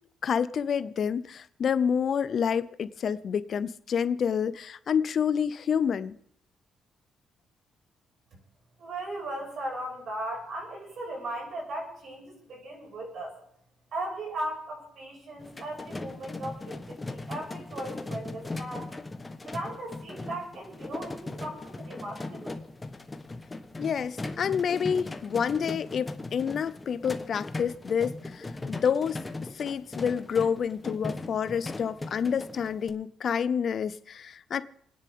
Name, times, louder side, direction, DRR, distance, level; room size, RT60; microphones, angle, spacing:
voice 1, 0.2-6.2 23.8-29.2 29.6-34.6, left 7 dB, 50° left, 0.6 m, -28 dB
voice 2, 8.8-13.4 13.9-18.9 19.4-22.6, right 1 dB, 60° right, 6.2 m, -37 dB
sound 1, 15.4-32.9, left 2 dB, 15° left, 1.1 m, -39 dB
29.0 x 10.0 x 3.7 m
cardioid pair, 125°, 0 cm